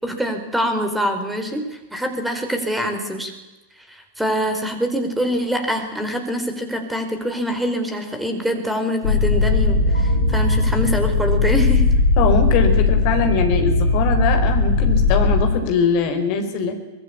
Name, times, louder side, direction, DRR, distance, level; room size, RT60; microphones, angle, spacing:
voice 1, 0.0-3.3 3.9-11.9, equal, 5° right, 6 dB, 4.5 m, -24 dB
sound 1, 9.0-15.4, left 3 dB, 70° left, 6.7 m, -18 dB
voice 2, 12.2-16.7, left 5 dB, 45° left, 6 dB, 4.7 m, -21 dB
24.0 x 20.5 x 8.7 m, 1.1 s
figure-of-eight pair, 90°, 0 cm